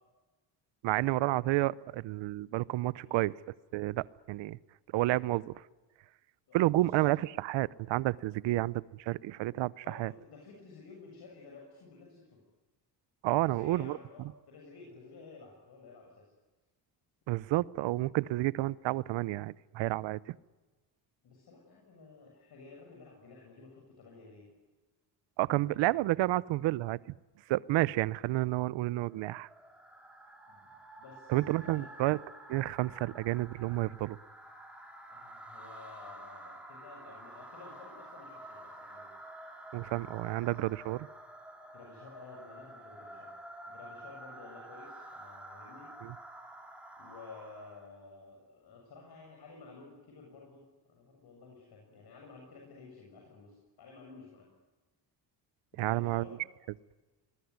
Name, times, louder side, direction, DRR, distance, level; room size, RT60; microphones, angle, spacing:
voice 1, 0.8-3.3 3.7-4.6 4.9-5.6 6.5-10.1 13.2-14.0 17.3-20.3 25.4-27.0 27.5-29.5 31.3-32.2 32.5-34.2 39.7-41.1 46.0-46.1 55.8-56.3, right 17 dB, 85° right, 20 dB, 0.9 m, -30 dB
voice 2, 6.5-6.8 9.8-12.4 13.4-16.3 21.2-24.5 30.5-30.6 31.0-31.9 35.1-39.1 41.7-43.3 43.7-45.9 47.0-54.5 55.7-56.5, left 4 dB, 60° left, 0 dB, 7.4 m, -52 dB
sound 1, 29.0-48.0, right 1 dB, 5° right, 4.8 m, -50 dB
25.0 x 21.0 x 9.6 m, 1.2 s
cardioid pair, 115°, 43 cm